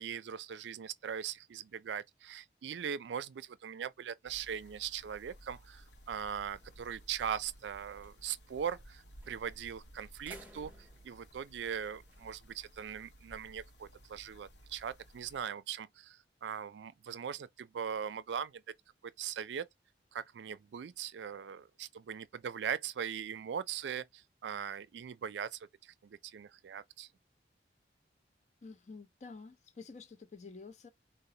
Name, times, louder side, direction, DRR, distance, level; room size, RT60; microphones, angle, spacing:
voice 1, 0.0-18.6 19.0-19.7 20.1-27.1, right 8 dB, 80° right, 0.4 m, -40 dB
sound 1, 4.3-15.4, right 1 dB, 75° left, 0.7 m, -57 dB
sound 2, 6.6-7.1 7.5-7.6 7.9-8.1 9.2-9.6 10.0-12.3, right 1 dB, 10° right, 0.6 m, -57 dB
voice 2, 28.6-30.9, left 4 dB, 40° left, 0.4 m, -49 dB
3.9 x 2.0 x 2.7 m
head